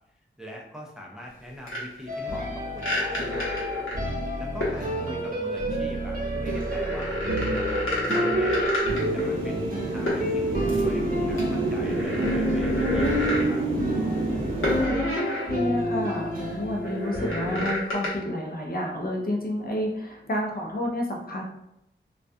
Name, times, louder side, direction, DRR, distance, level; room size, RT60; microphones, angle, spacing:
voice 1, 0.4-3.5 4.4-7.8 8.1-8.7 9.1-13.7, equal, 5° right, -1 dB, 0.5 m, -42 dB
chair squeek, 1.7-1.8 2.8-4.1 4.6-4.8 6.3-9.2 10.1-10.2 10.6-10.8 11.4-13.5 14.6-15.5 15.9-16.0 16.8-18.1, left 1 dB, 80° left, 0.9 m, -29 dB
sound 1, 2.1-17.6, right 1 dB, 45° right, 0.8 m, -29 dB
sound 2, 8.9-14.9, right 1 dB, 75° right, 0.5 m, -30 dB
voice 2, 14.8-21.4, left 1 dB, 45° left, 0 dB, 0.6 m, -30 dB
2.3 x 2.2 x 2.6 m, 0.80 s
cardioid pair, 45°, 21 cm